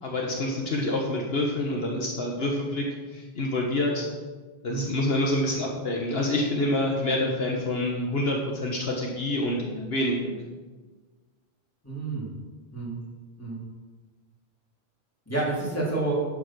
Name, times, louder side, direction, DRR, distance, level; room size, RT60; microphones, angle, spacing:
voice 1, 0.0-2.9 3.1-4.0 4.6-10.3, left 1 dB, 65° left, 0 dB, 1.5 m, -27 dB
voice 2, 11.8-12.3 12.7-12.9 13.4-13.6 15.3-16.1, right 2 dB, 15° left, -6 dB, 4.0 m, -29 dB
11.5 x 7.6 x 6.1 m, 1.4 s
omnidirectional pair, 1.1 m